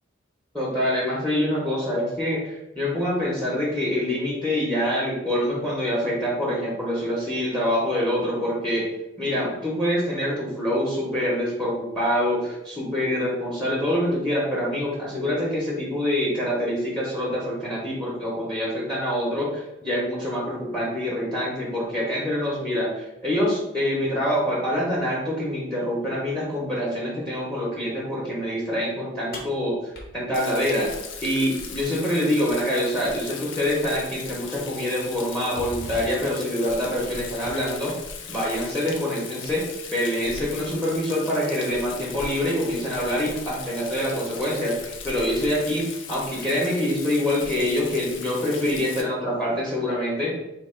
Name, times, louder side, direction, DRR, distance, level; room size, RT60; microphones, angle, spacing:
voice 1, 0.5-8.9 9.2-29.8 30.1-30.9 31.2-37.9 38.3-44.7 45.0-50.3, left 1 dB, 5° left, -4 dB, 0.8 m, -25 dB
sound 1, 29.3-31.5 33.4-33.5 34.3-34.5 35.0-36.5, left 1 dB, 55° left, 0.9 m, -40 dB
Rain, 30.3-49.0, left 5 dB, 80° left, 0.5 m, -38 dB
2.9 x 2.8 x 4.3 m, 0.93 s
head